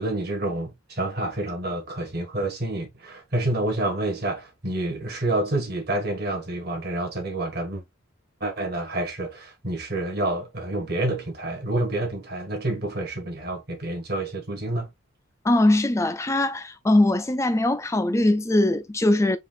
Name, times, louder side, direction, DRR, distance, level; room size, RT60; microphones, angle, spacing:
voice 1, 0.0-7.8 8.4-14.9, right 1 dB, 45° right, 1.7 m, -28 dB
voice 2, 15.4-19.4, left 1 dB, 15° left, 0.3 m, -21 dB
4.8 x 2.5 x 3.8 m
head